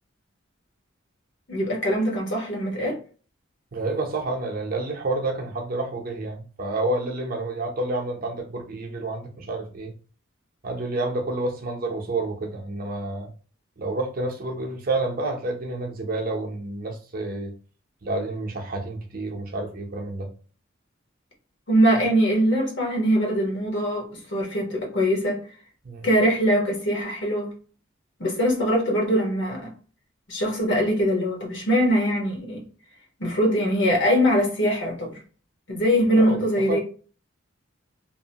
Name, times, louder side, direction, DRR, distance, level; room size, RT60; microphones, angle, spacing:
voice 1, 1.5-3.0 21.7-25.4 26.0-27.5 28.2-29.7 30.3-32.6 33.2-35.2 35.7-36.8, equal, 60° left, 1.0 m, -22 dB
voice 2, 3.7-9.9 10.6-13.3 13.8-17.5 18.0-20.3 25.8-26.1 36.2-36.4 36.7-36.8, right 2 dB, 45° right, 0.6 m, -29 dB
2.8 x 2.0 x 2.7 m
head